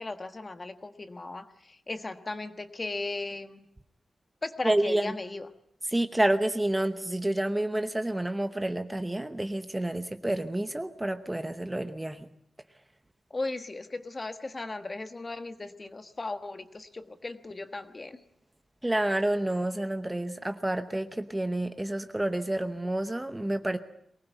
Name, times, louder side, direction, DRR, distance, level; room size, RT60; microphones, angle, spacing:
voice 1, 0.0-3.7 4.4-5.5 13.3-18.2, left 2 dB, 25° left, 9 dB, 1.4 m, -37 dB
voice 2, 4.6-5.2 5.9-12.3 18.8-23.8, right 1 dB, 10° right, 9 dB, 0.9 m, -29 dB
23.0 x 19.5 x 9.1 m, 0.71 s
wide cardioid pair, 175°, 0 cm